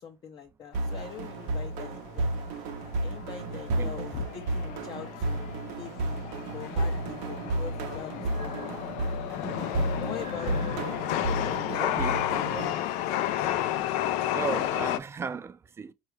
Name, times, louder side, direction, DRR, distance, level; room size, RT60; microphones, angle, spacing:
voice 1, 0.0-2.3 3.0-6.2 6.5-8.8 10.0-10.9 11.4-13.2, left 7 dB, 40° left, 0.5 m, -43 dB
Chatter / Subway metro underground, 0.7-15.0, left 12 dB, 90° left, 0.4 m, -32 dB
sound 1, 0.7-12.7, right 2 dB, 85° right, 0.6 m, -32 dB
sound 2, 8.3-8.7 10.0-10.8, right 8 dB, 50° right, 0.7 m, -48 dB
voice 2, 11.8-12.3 14.3-15.9, right 6 dB, 20° right, 0.3 m, -35 dB
4.5 x 2.3 x 3.1 m
cardioid pair, 125°, 12 cm